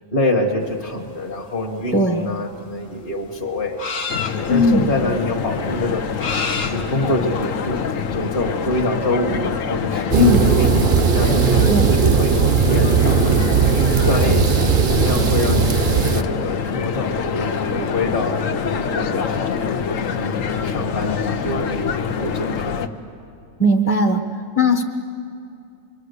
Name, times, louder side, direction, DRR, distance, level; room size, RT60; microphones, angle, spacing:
voice 1, 0.1-4.0 4.5-6.1 6.7-7.8 8.1-11.7 11.9-13.7 14.1-14.7 15.0-22.8, left 1 dB, 40° left, -1 dB, 1.6 m, -26 dB
sound 1, 0.7-8.0, left 4 dB, 65° left, 1.6 m, -31 dB
voice 2, 1.9-2.3 4.5-4.9 10.1-10.4 11.7-11.9 23.6-24.2 24.6-24.8, left 1 dB, 10° left, 3 dB, 0.8 m, -17 dB
sound 2, 4.1-22.9, left 6 dB, 85° left, 1.3 m, -25 dB
sound 3, 10.1-16.2, right 6 dB, 50° right, 0.9 m, -17 dB
25.0 x 23.0 x 8.1 m, 2.6 s
omnidirectional pair, 1.3 m